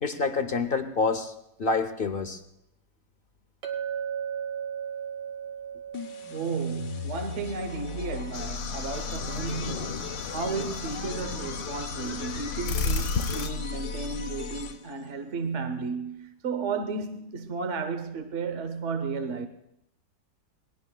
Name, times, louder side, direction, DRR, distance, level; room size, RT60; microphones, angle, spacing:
voice 1, 0.0-1.3 1.6-2.4, left 4 dB, 50° left, 0.7 m, -27 dB
Chink clink, 3.6-8.1, right 8 dB, 65° right, 2.0 m, -36 dB
sound 1, 5.9-15.1, left 5 dB, 85° left, 1.6 m, -37 dB
voice 2, 6.3-19.5, right 4 dB, 50° right, 1.0 m, -33 dB
sound 2, 8.3-13.5, left 4 dB, 70° left, 1.6 m, -33 dB
28.0 x 20.5 x 2.2 m
omnidirectional pair, 1.9 m